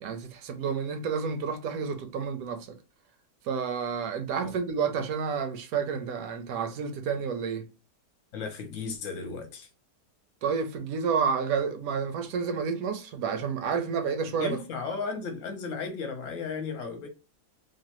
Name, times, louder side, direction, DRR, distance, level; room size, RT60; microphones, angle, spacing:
voice 1, 0.0-2.8 3.4-7.7 10.4-14.6, right 6 dB, 70° right, 0.9 m, -30 dB
voice 2, 8.3-9.7 14.4-17.1, left 4 dB, 60° left, 1.1 m, -35 dB
3.1 x 2.2 x 2.9 m
omnidirectional pair, 1.8 m